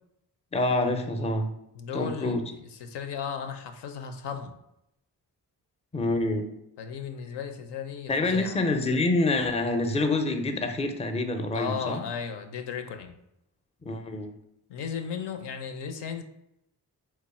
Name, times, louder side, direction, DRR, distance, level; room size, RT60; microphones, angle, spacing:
voice 1, 0.5-1.5 1.9-2.4 5.9-6.5 8.1-12.0 13.8-14.3, left 2 dB, 15° left, 6 dB, 0.5 m, -26 dB
voice 2, 1.8-2.4 2.8-4.5 6.8-8.6 11.5-13.2 14.7-16.2, left 6 dB, 75° left, 6 dB, 0.5 m, -35 dB
3.1 x 2.0 x 4.1 m, 0.80 s
supercardioid pair, 50°, 41 cm